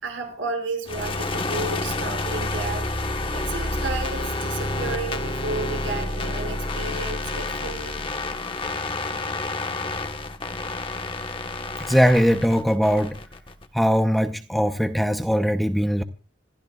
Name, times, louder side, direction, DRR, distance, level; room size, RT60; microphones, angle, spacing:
voice 1, 0.0-2.9 3.3-8.0, right 3 dB, 80° right, 5.4 m, -32 dB
sound 1, 0.9-13.7, left 2 dB, 25° left, 1.2 m, -29 dB
voice 2, 11.8-13.1 13.7-16.0, equal, ahead, 0.7 m, -20 dB
27.0 x 14.5 x 2.3 m
head